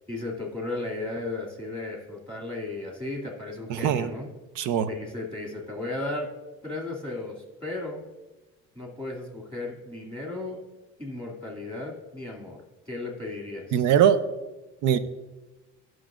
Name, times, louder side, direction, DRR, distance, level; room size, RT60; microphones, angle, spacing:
voice 1, 0.1-4.3 4.9-6.3 6.6-8.0 8.7-10.6 11.0-12.6 12.9-13.9, left 2 dB, 20° right, -1 dB, 2.4 m, -35 dB
voice 2, 3.7-4.1 4.6-4.9 13.7-14.2 14.8-15.0, right 9 dB, 85° right, 12 dB, 0.6 m, -21 dB
13.5 x 6.1 x 2.5 m, 1.1 s
cardioid pair, 100°, 30 cm